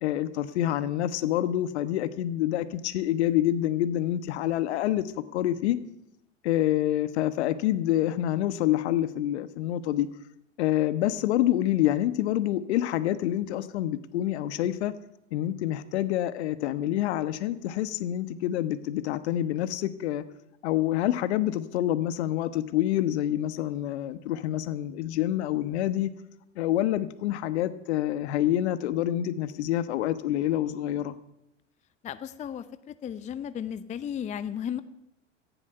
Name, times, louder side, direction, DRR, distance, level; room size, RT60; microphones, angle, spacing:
voice 1, 0.0-5.1 5.3-5.8 6.4-10.1 10.6-14.9 15.3-20.2 20.6-26.1 26.6-31.1, left 13 dB, 60° left, 13 dB, 1.2 m, -27 dB
voice 2, 32.0-34.8, left 9 dB, 20° left, 14 dB, 0.6 m, -35 dB
17.5 x 14.5 x 5.6 m, 0.85 s
figure-of-eight pair, 85°, 38 cm